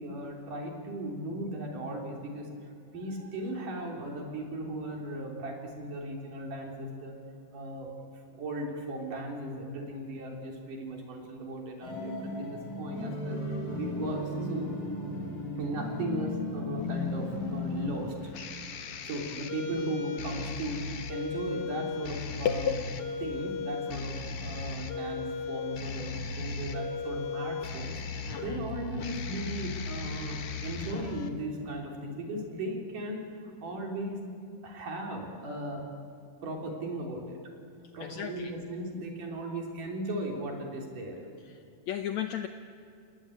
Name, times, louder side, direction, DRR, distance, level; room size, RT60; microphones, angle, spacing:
voice 1, 0.0-2.5 2.9-7.2 7.5-7.9 8.3-14.8 15.6-18.3 19.0-22.8 23.2-34.3 34.6-35.9 36.4-37.4 37.9-41.3, right 1 dB, 70° right, 1 dB, 5.0 m, -37 dB
sound 1, 11.8-18.0, left 2 dB, 25° left, 5.7 m, -35 dB
sound 2, 16.8-31.3, left 4 dB, 55° left, 2.0 m, -37 dB
voice 2, 22.5-22.8 28.3-28.6 38.0-38.5 41.9-42.5, left 9 dB, 70° left, 7 dB, 1.9 m, -32 dB
29.5 x 19.5 x 8.7 m, 2.5 s
omnidirectional pair, 3.8 m